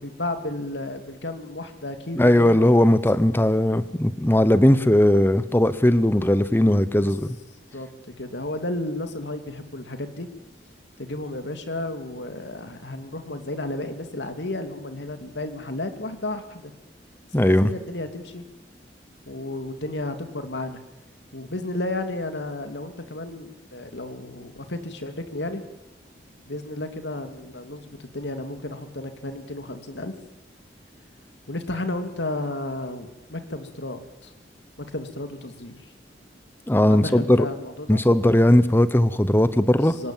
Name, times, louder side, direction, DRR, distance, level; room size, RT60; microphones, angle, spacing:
voice 1, 0.0-2.7 7.0-7.1 7.7-10.3 11.0-16.7 17.4-18.4 19.3-20.8 21.3-25.6 26.5-30.1 31.5-34.3 34.8-35.9 36.9-38.0 39.7-40.1, left 2 dB, 75° left, 7 dB, 2.7 m, -33 dB
voice 2, 2.2-7.3 17.3-17.7 36.7-37.5 37.9-40.0, left 1 dB, 10° left, 14 dB, 0.9 m, -18 dB
25.0 x 19.5 x 9.1 m, 0.93 s
head